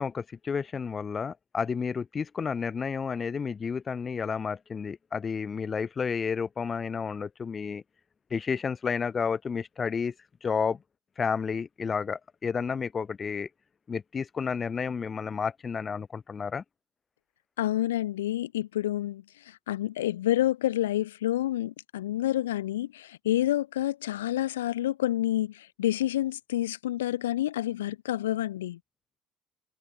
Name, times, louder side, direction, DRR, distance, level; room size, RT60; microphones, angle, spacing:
voice 1, 0.0-7.8 8.3-10.1 10.4-10.8 11.2-13.5 13.9-16.6, left 6 dB, 30° left, 3.4 m, -31 dB
voice 2, 17.6-28.8, left 13 dB, 70° left, 3.6 m, -28 dB
figure-of-eight pair, 60°, 0 cm